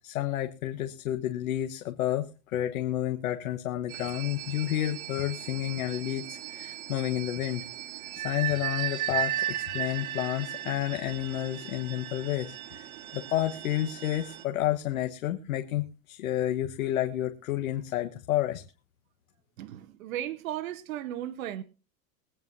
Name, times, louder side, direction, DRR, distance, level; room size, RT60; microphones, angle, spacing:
voice 1, 0.0-7.6 8.1-18.6, left 13 dB, 75° left, 1.3 m, -30 dB
sound 1, 3.9-14.4, right 12 dB, 90° right, 1.8 m, -36 dB
voice 2, 19.6-21.6, right 12 dB, 75° right, 1.0 m, -35 dB
22.5 x 9.2 x 2.7 m
supercardioid pair, 180°, 42 cm